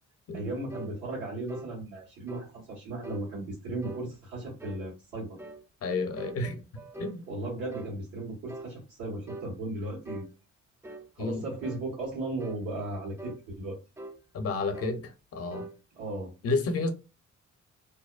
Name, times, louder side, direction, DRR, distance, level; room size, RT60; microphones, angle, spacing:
voice 1, 0.3-5.4 7.3-10.3 11.1-13.8 16.0-16.3, right 2 dB, 80° right, 1.4 m, -36 dB
sound 1, 0.7-1.0 1.5-1.7 2.3-2.5 3.0-3.3 3.8-4.1 4.6-4.9 5.4-5.6 6.2-7.2 7.7-8.0 8.5-8.7 9.3-9.5 10.1-10.3 10.8-11.1 11.6-11.9 12.4-12.6 13.2-13.4 14.0-14.2 14.7-15.0 15.5-15.8, right 1 dB, 10° right, 0.3 m, -43 dB
voice 2, 5.8-6.6 7.0-7.2 11.2-11.5 14.3-15.7 16.4-16.9, left 3 dB, 50° left, 0.7 m, -31 dB
2.7 x 2.1 x 2.3 m
cardioid pair, 90°, 30 cm